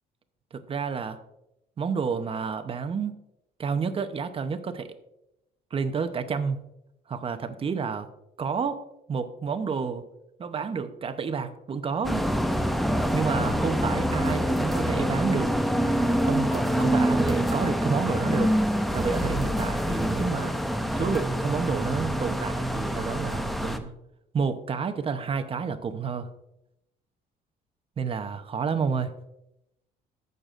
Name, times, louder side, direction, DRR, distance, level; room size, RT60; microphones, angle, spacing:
voice 1, 0.5-1.2 1.8-3.1 3.6-5.0 5.7-6.6 7.1-8.1 8.4-8.8 9.1-10.0 10.4-12.3 13.1-15.5 16.2-18.5 18.9-20.5 20.9-23.9 24.3-26.3 28.0-29.1, right 5 dB, 35° right, 10 dB, 0.8 m, -29 dB
sound 1, 12.0-23.8, equal, ahead, 0.6 m, -26 dB
15.5 x 6.7 x 2.5 m, 0.85 s
cardioid pair, 110°, 17 cm